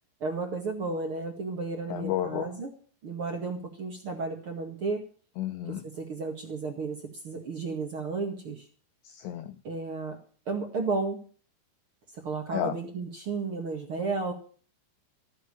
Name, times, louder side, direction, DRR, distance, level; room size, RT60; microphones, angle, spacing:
voice 1, 0.2-2.7 3.0-5.0 5.7-7.0 7.2-8.6 9.6-10.2 10.4-11.2 12.2-14.3, right 4 dB, 65° right, 2 dB, 1.3 m, -33 dB
voice 2, 1.9-2.5 5.4-5.8 9.1-9.5 12.5-12.7, left 11 dB, 85° left, 7 dB, 2.5 m, -31 dB
15.0 x 7.6 x 8.4 m, 0.41 s
omnidirectional pair, 5.9 m